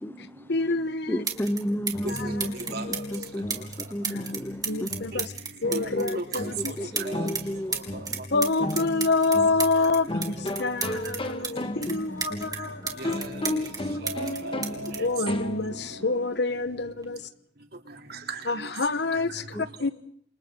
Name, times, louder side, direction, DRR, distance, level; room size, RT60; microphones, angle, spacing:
voice 1, 0.2-1.2 2.1-3.5 4.0-4.3 4.6-5.3 5.6-6.7 7.2-7.3 8.3-13.2 14.9-17.3 18.5-19.9, left 3 dB, 60° left, 1.3 m, -28 dB
sound 1, 0.8-0.9 1.2-1.6 1.9-7.4 7.7-11.5 11.8-13.8 14.1-15.9 16.8-17.0, right 6 dB, 20° right, 3.5 m, -33 dB
voice 2, 1.1-2.5 2.9-4.9 5.9-6.2 6.8-7.8 8.3-8.4 11.9-12.2 12.8-12.9 14.4-14.5 14.8-14.9 19.5-19.6, equal, 10° left, 0.8 m, -33 dB
sound 2, 1.7-16.0, left 1 dB, 30° left, 1.8 m, -35 dB
voice 3, 2.0-2.9 4.7-4.8 5.7-7.3 7.7-8.0 13.0-13.7 14.0-14.8 18.1-18.7, right 3 dB, 55° right, 3.3 m, -37 dB
sound 3, 14.0-16.8, equal, 75° right, 4.6 m, -40 dB
29.5 x 27.0 x 3.9 m
head